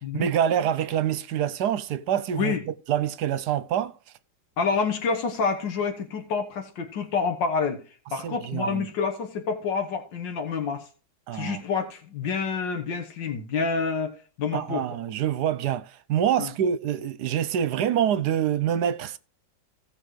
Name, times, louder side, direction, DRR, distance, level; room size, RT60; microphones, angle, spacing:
voice 1, 0.1-2.5 2.9-3.9 8.2-8.9 11.3-11.6 14.5-19.2, right 9 dB, 70° right, 1.2 m, -26 dB
voice 2, 4.6-7.8 8.1-10.9 11.3-14.8 16.4-16.5, left 5 dB, 85° left, 1.9 m, -28 dB
17.0 x 6.4 x 3.1 m
omnidirectional pair, 1.9 m